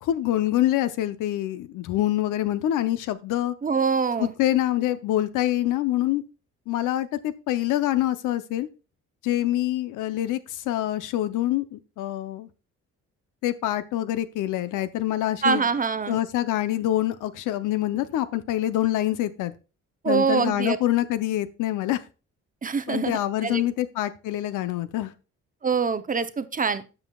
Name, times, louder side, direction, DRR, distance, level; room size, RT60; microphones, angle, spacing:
voice 1, 0.0-3.5 4.2-6.2 6.7-8.7 9.2-12.5 13.4-15.7 16.1-19.5 20.1-22.0 22.9-25.1, left 14 dB, 90° left, 0.7 m, -25 dB
voice 2, 3.6-4.3 15.4-16.2 20.0-20.8 22.6-23.6 25.6-26.8, right 5 dB, 25° right, 0.7 m, -24 dB
13.0 x 5.6 x 2.3 m
cardioid pair, 90°, 30 cm